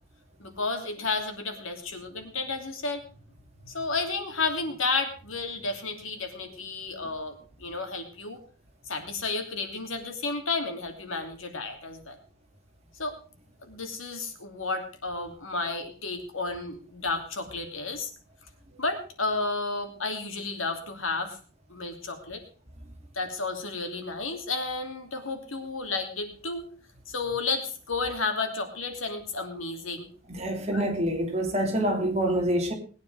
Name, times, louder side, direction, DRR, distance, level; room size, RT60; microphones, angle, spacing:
voice 1, 0.4-3.0 3.6-7.3 7.6-8.4 8.9-12.2 13.0-13.1 13.6-18.1 18.8-21.4 21.7-22.4 23.1-26.6 27.1-30.1 30.7-30.8, left 3 dB, 85° left, 5 dB, 2.9 m, -32 dB
voice 2, 30.3-32.7, right 1 dB, 30° right, 1 dB, 2.9 m, -26 dB
20.0 x 9.4 x 4.8 m, 0.40 s
head